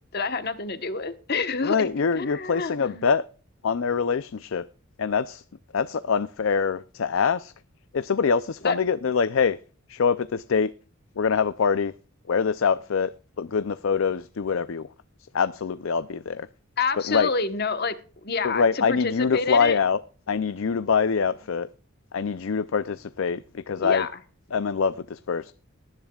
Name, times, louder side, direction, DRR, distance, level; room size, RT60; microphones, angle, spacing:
voice 1, 0.1-1.9 2.1-3.0 8.6-8.8 16.8-17.9 18.2-19.8 23.8-24.1, left 4 dB, 45° left, 1.2 m, -28 dB
voice 2, 1.6-3.2 3.6-4.6 5.0-5.4 5.7-7.5 7.9-9.6 9.9-10.7 11.2-11.9 12.3-13.1 13.4-14.9 15.3-16.5 17.1-17.3 18.4-20.0 20.3-21.7 22.1-24.1 24.5-25.5, left 5 dB, 65° left, 0.5 m, -24 dB
19.0 x 10.5 x 2.4 m
head